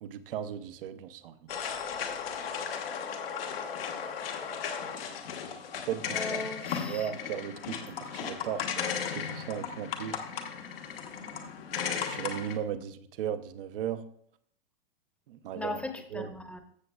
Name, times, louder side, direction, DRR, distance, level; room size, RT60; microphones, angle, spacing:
voice 1, 0.0-1.5 5.9-6.5 6.9-10.2 12.0-14.0 15.3-15.8 16.1-16.3, right 9 dB, 60° right, 12 dB, 0.8 m, -36 dB
sound 1, 1.5-12.6, left 7 dB, 65° left, 1.4 m, -36 dB
voice 2, 6.1-7.1 15.6-16.6, left 2 dB, 5° left, 6 dB, 1.0 m, -37 dB
14.5 x 6.8 x 2.3 m, 0.65 s
hypercardioid pair, 105°, 31 cm